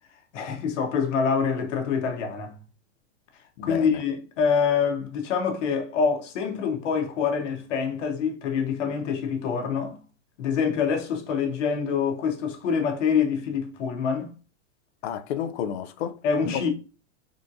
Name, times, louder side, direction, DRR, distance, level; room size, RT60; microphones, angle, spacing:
voice 1, 0.3-2.6 3.6-10.0 10.4-14.3 16.2-16.7, left 6 dB, 85° left, 1.0 m, -26 dB
voice 2, 3.6-4.0 15.0-16.2, left 9 dB, 60° left, 0.5 m, -31 dB
3.6 x 2.5 x 2.6 m
supercardioid pair, 150°, 36 cm